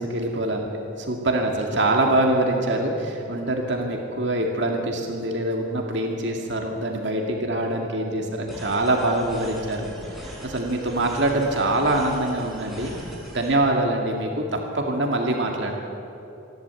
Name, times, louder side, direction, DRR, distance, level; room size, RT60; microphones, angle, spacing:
voice 1, 0.0-9.9 10.4-13.0 13.3-15.8, right 1 dB, 60° right, 1 dB, 2.2 m, -24 dB
sound 1, 8.5-13.5, right 1 dB, ahead, 5.2 m, -40 dB
28.0 x 12.0 x 8.3 m, 2.8 s
head